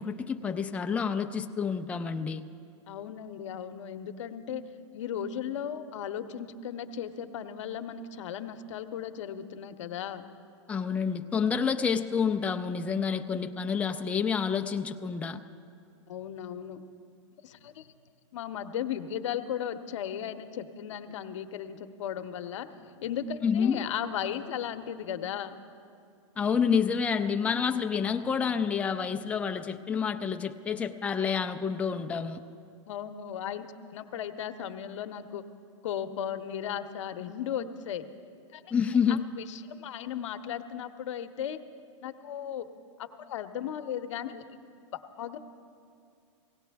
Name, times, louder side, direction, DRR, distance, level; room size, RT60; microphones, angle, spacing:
voice 1, 0.0-2.4 10.7-15.4 23.4-23.8 26.4-32.4 38.7-39.2, left 6 dB, 10° left, 6 dB, 0.4 m, -28 dB
voice 2, 2.9-4.6 4.9-10.2 16.1-16.8 17.4-17.9 18.3-22.7 23.0-25.6 32.9-35.4 35.8-38.0 38.5-38.6 39.1-41.6 42.0-42.7 43.0-44.4 45.2-45.4, left 9 dB, 70° left, 8 dB, 0.8 m, -36 dB
17.5 x 16.5 x 3.4 m, 2.4 s
hypercardioid pair, 135°, 16 cm